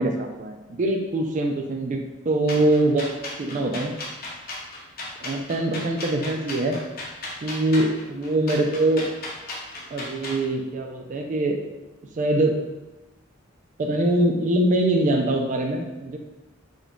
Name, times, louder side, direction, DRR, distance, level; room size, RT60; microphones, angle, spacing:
voice 1, 0.0-2.0 2.3-3.1 3.4-3.9 5.2-6.8 7.4-9.1 9.9-11.6 12.2-12.5 13.8-16.2, right 1 dB, 40° right, 3 dB, 0.4 m, -23 dB
sound 1, 2.5-10.4, left 2 dB, 45° left, 0.7 m, -35 dB
3.7 x 2.3 x 3.5 m, 1.0 s
head